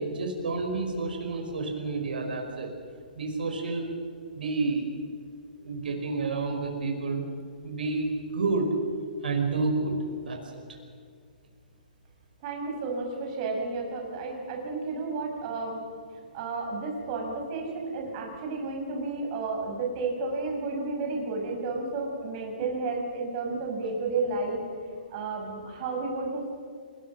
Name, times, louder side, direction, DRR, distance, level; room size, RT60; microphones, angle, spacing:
voice 1, 0.0-2.7 3.2-3.9 4.3-4.8 5.6-7.2 7.6-8.7 9.2-10.0 10.2-10.6, right 3 dB, 80° right, 3 dB, 5.6 m, -29 dB
voice 2, 12.4-15.8 16.3-24.6 25.1-26.5, right 3 dB, 40° right, 1 dB, 6.6 m, -32 dB
28.0 x 21.5 x 5.8 m, 2.2 s
hypercardioid pair, 145°, 5 cm